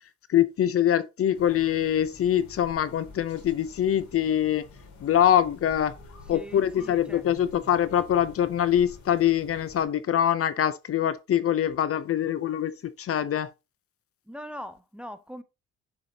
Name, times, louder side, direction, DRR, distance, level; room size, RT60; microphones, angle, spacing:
voice 1, 0.3-4.6 5.0-5.9 6.3-13.5, left 10 dB, 50° left, 0.6 m, -24 dB
sound 1, 1.3-9.8, left 3 dB, 65° left, 2.7 m, -48 dB
voice 2, 6.3-7.2 14.3-15.4, equal, 5° right, 0.6 m, -41 dB
6.9 x 4.9 x 2.8 m
cardioid pair, 90°, 30 cm